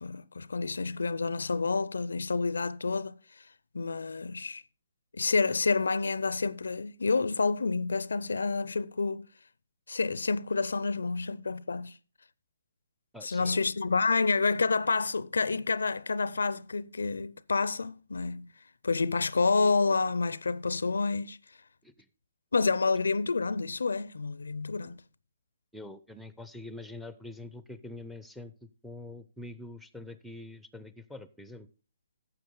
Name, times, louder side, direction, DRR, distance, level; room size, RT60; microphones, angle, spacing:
voice 1, 0.0-3.2 3.7-4.6 5.1-9.3 9.9-12.0 13.2-18.5 18.8-21.4 22.5-25.0, left 4 dB, 85° left, 0.4 m, -29 dB
voice 2, 13.1-13.6 21.8-22.1 25.7-31.7, left 2 dB, ahead, 0.6 m, -45 dB
11.5 x 7.4 x 3.9 m
hypercardioid pair, 145°, 0 cm